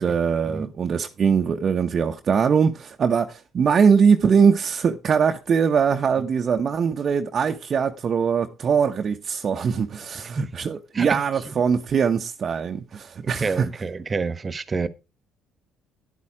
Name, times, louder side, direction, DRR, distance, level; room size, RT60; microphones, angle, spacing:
voice 1, 0.0-13.7, right 6 dB, 50° right, 1.0 m, -22 dB
voice 2, 13.2-14.9, right 4 dB, 30° right, 1.3 m, -28 dB
10.5 x 8.6 x 4.8 m
hypercardioid pair, 60°, 0 cm